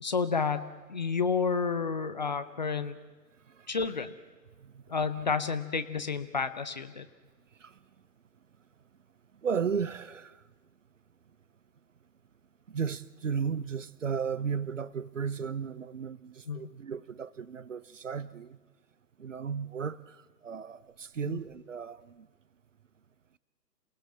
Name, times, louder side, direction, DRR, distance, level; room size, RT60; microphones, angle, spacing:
voice 1, 0.0-3.0 3.7-4.1 4.9-7.0 16.5-16.6 21.3-21.4, left 5 dB, 25° left, 0.7 m, -30 dB
voice 2, 9.4-10.4 12.7-18.6 19.2-20.2 20.4-22.3, right 6 dB, 50° right, 0.8 m, -34 dB
28.0 x 17.0 x 7.6 m
figure-of-eight pair, 140°, 50 cm